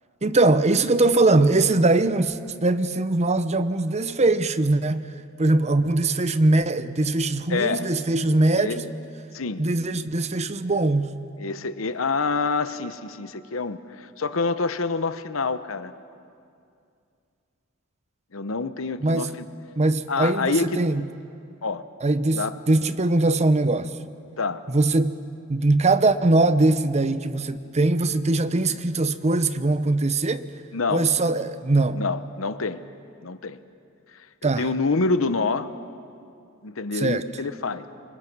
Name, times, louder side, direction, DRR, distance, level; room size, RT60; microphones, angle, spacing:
voice 1, 0.2-5.1 5.4-8.9 9.6-11.1 19.0-19.3 19.8-21.0 22.0-23.9 24.7-25.1 25.5-30.4 30.9-32.0 34.4-34.7 36.9-37.2, right 2 dB, 35° right, 0.8 m, -21 dB
voice 2, 7.5-7.9 8.5-8.9 9.3-9.6 11.4-15.9 18.3-19.5 20.1-20.8 21.6-21.8 22.3-22.5 24.4-24.6 30.7-31.1 31.9-32.8 33.2-33.6 34.1-35.7 36.6-37.9, left 4 dB, 70° left, 0.9 m, -27 dB
28.5 x 24.5 x 6.2 m
head